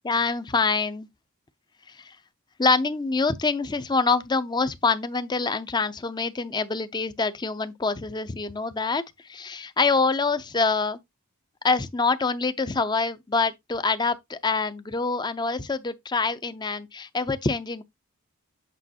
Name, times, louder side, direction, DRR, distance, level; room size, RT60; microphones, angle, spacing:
voice 1, 0.0-1.1 1.9-2.2 2.6-11.0 11.6-17.8, left 4 dB, 20° left, 0.5 m, -25 dB
8.3 x 4.8 x 2.7 m
head